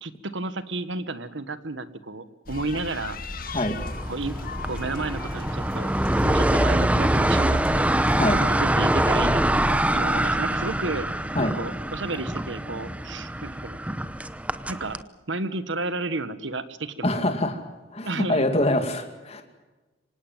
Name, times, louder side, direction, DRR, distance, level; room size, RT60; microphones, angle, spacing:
voice 1, 0.0-3.2 4.1-4.4 4.7-5.9 6.2-7.9 8.4-11.1 11.4-13.8 14.7-15.0 15.3-17.1 18.0-18.4, right 3 dB, 80° right, 13 dB, 1.5 m, -32 dB
sound 1, 2.5-8.6, left 2 dB, 50° left, 1.7 m, -37 dB
sound 2, 3.5-15.0, right 1 dB, 5° right, 0.8 m, -24 dB
voice 2, 17.0-17.6 17.9-19.4, left 1 dB, 35° left, 6 dB, 2.3 m, -24 dB
25.0 x 18.5 x 7.5 m, 1.2 s
head